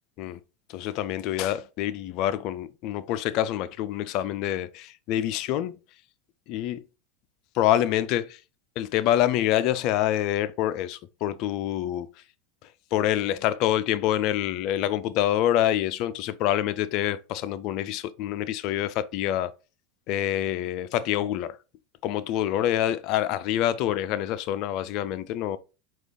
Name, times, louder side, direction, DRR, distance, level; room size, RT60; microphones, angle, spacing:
voice 1, 0.7-5.7 6.5-6.8 7.5-8.4 8.8-12.1 12.9-19.5 20.1-21.6 22.0-25.6, left 12 dB, 55° left, 0.4 m, -26 dB
4.7 x 2.4 x 3.8 m
hypercardioid pair, 95°, 0 cm